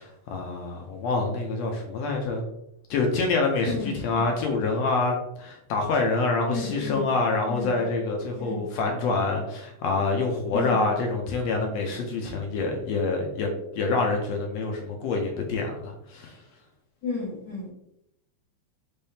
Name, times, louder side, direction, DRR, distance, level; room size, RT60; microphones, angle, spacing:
voice 1, 0.0-2.5 2.9-16.4, left 3 dB, 75° left, 2 dB, 1.6 m, -26 dB
voice 2, 3.6-4.2 6.5-7.1 7.5-7.7 8.4-8.8 10.5-10.8 17.0-17.7, left 4 dB, 55° left, -7 dB, 1.2 m, -33 dB
5.4 x 3.4 x 2.7 m, 0.79 s
omnidirectional pair, 3.5 m